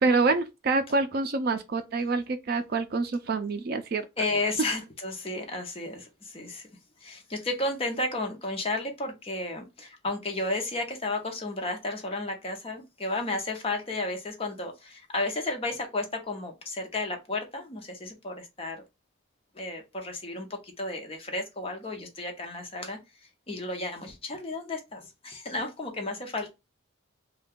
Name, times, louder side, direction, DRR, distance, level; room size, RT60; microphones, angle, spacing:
voice 1, 0.0-4.1, right 3 dB, 45° right, 0.4 m, -26 dB
voice 2, 4.2-6.7 7.0-18.8 19.5-23.0 23.5-26.5, left 2 dB, 30° left, 0.6 m, -33 dB
2.7 x 2.2 x 3.5 m
head